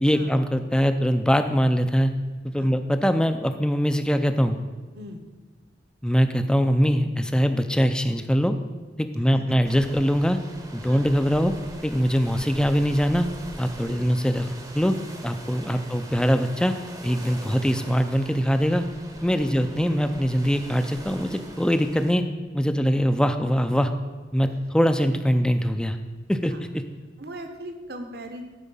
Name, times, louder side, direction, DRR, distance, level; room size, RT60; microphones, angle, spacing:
voice 1, 0.0-2.1 2.4-4.6 6.0-8.6 9.0-10.4 10.7-11.5 11.8-13.3 13.6-14.9 15.2-16.7 17.0-18.8 19.2-22.2 22.5-23.9 24.3-26.0 26.3-26.5, equal, 5° left, 8 dB, 0.4 m, -22 dB
sound 1, 9.7-22.1, right 1 dB, 20° right, 0.8 m, -42 dB
voice 2, 27.2-28.4, right 1 dB, 65° right, 5 dB, 1.0 m, -40 dB
12.0 x 5.0 x 5.5 m, 1.4 s
head